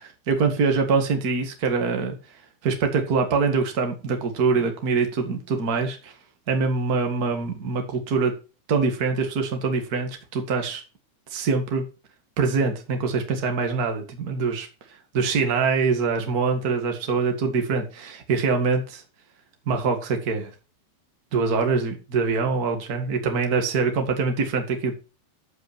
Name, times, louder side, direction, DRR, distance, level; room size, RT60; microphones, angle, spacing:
voice 1, 0.0-2.2 2.6-6.1 6.5-8.3 8.7-10.8 11.3-11.8 12.4-14.7 15.1-19.0 19.6-20.5 21.3-24.9, right 4 dB, 80° right, 5 dB, 0.8 m, -24 dB
14.0 x 5.8 x 4.5 m, 0.33 s
omnidirectional pair, 5.3 m